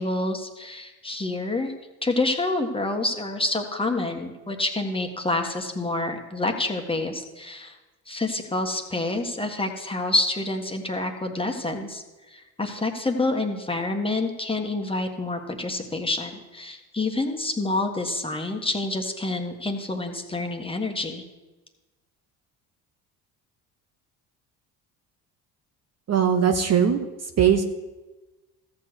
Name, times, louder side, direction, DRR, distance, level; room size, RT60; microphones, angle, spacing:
voice 1, 0.0-1.7 2.0-7.8 8.1-12.0 12.3-21.2, left 2 dB, 15° left, 3 dB, 1.6 m, -28 dB
voice 2, 26.1-27.6, right 8 dB, 40° right, 7 dB, 1.0 m, -21 dB
14.0 x 4.7 x 7.9 m, 1.1 s
supercardioid pair, 80°, 39 cm